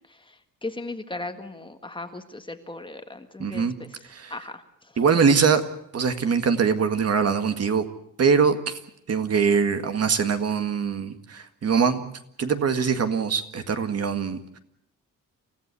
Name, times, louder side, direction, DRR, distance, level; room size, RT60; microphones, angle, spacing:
voice 1, 0.1-3.9 4.3-4.6, left 2 dB, 15° left, 7 dB, 1.6 m, -37 dB
voice 2, 3.4-3.7 4.1-4.3 5.0-5.6 5.9-7.8 8.2-8.8 9.1-12.1 12.4-14.6, right 6 dB, 45° right, 8 dB, 1.8 m, -23 dB
28.5 x 15.5 x 8.4 m, 0.73 s
wide cardioid pair, 150°, 34 cm